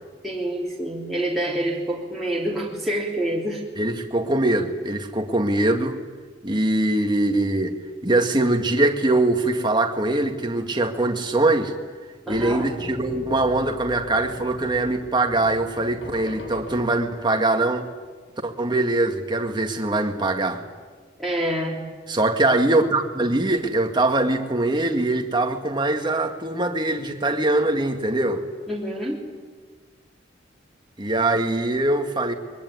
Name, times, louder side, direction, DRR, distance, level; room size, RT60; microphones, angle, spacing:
voice 1, 0.2-3.6 12.3-12.7 21.2-21.8 28.7-29.2, right 1 dB, ahead, -3 dB, 3.4 m, -27 dB
voice 2, 3.8-6.0 6.4-7.7 8.0-11.7 12.3-17.9 18.4-20.6 22.1-28.4 31.0-32.3, right 2 dB, 25° right, 4 dB, 2.0 m, -22 dB
sound 1, 12.3-17.4, left 1 dB, 75° left, 4.0 m, -39 dB
23.0 x 22.5 x 9.7 m, 1.5 s
head